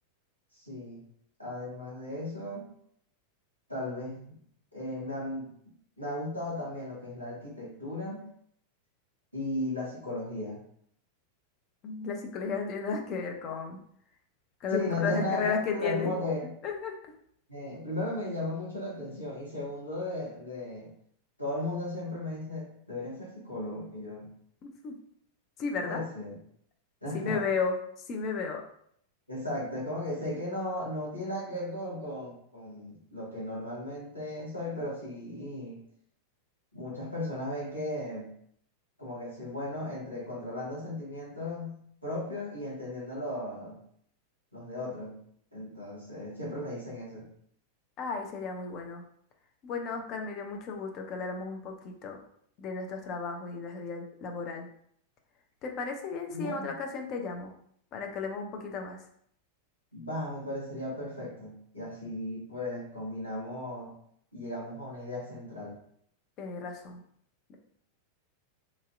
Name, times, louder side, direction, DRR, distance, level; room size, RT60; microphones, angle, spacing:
voice 1, 0.5-1.0 1.4-2.6 3.7-4.4 4.7-5.5 6.0-8.3 9.3-10.6 14.7-16.5 17.5-20.9 21.4-24.3 25.8-26.3 27.0-27.4 29.3-35.8 36.7-38.3 39.0-41.7 42.0-43.8 44.5-45.2 45.5-47.3 56.3-56.7 59.9-63.9 64.3-65.8, left 1 dB, 85° left, -7 dB, 1.3 m, -36 dB
voice 2, 11.8-13.8 14.6-16.1 16.6-16.9 24.6-25.0 25.6-26.0 27.1-27.7 28.1-28.6 48.0-49.0 49.6-52.2 52.6-54.7 55.6-57.5 57.9-59.0 66.4-67.0 67.5-67.6, left 4 dB, 35° left, 3 dB, 0.5 m, -34 dB
2.9 x 2.7 x 2.4 m, 0.66 s
figure-of-eight pair, 90°, 0 cm